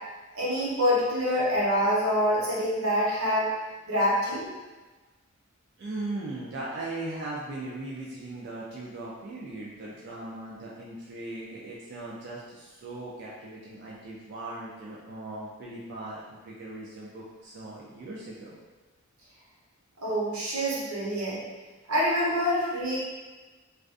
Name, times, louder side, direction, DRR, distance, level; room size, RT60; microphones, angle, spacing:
voice 1, 0.3-3.5 3.9-4.5 20.0-21.4 21.9-23.0, equal, 85° right, -6 dB, 0.8 m, -26 dB
voice 2, 5.8-18.6, right 2 dB, 50° right, -5 dB, 0.3 m, -38 dB
2.4 x 2.3 x 2.4 m, 1.2 s
head